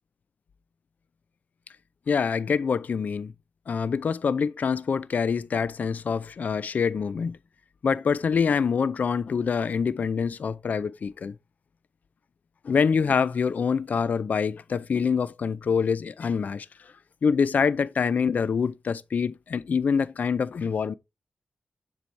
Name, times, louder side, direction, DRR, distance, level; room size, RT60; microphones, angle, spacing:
voice 1, 2.1-3.3 3.7-7.4 7.8-11.3 12.6-16.7 17.2-20.9, left 6 dB, 65° left, 0.4 m, -25 dB
7.0 x 4.7 x 3.2 m
wide cardioid pair, 100°, 3 cm